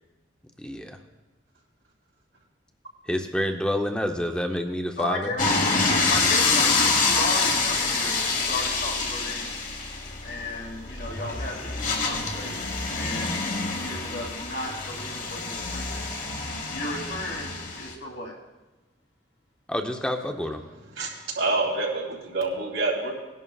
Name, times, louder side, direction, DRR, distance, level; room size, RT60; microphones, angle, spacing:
voice 1, 0.6-1.0 3.1-5.3 19.7-20.6, equal, 5° left, 4 dB, 0.7 m, -28 dB
voice 2, 5.0-5.5 6.1-9.6 10.2-11.7 12.0-13.4 13.7-16.1 16.7-18.3, left 2 dB, 75° left, -2 dB, 2.8 m, -35 dB
sound 1, 5.4-17.9, left 4 dB, 45° left, 1.4 m, -26 dB
voice 3, 21.0-23.1, right 3 dB, 90° right, -2 dB, 3.1 m, -27 dB
19.5 x 11.0 x 2.4 m, 1.1 s
head